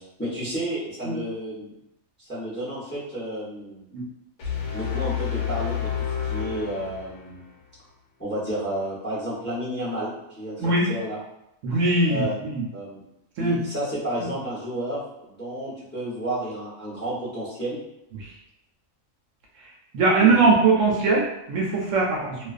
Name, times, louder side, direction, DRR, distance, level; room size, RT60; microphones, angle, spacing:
voice 1, 0.2-1.7 2.2-3.9 4.7-7.4 8.2-11.2 12.1-12.4 12.7-13.0 13.4-17.8 20.2-20.6, right 1 dB, 10° left, -8 dB, 0.6 m, -31 dB
sound 1, 4.4-7.6, left 8 dB, 75° left, 1.1 m, -29 dB
voice 2, 10.6-10.9 11.6-12.6 13.4-13.6 18.2-18.3 19.9-22.4, right 3 dB, 70° right, -2 dB, 0.9 m, -21 dB
2.4 x 2.4 x 2.3 m, 0.84 s
omnidirectional pair, 1.4 m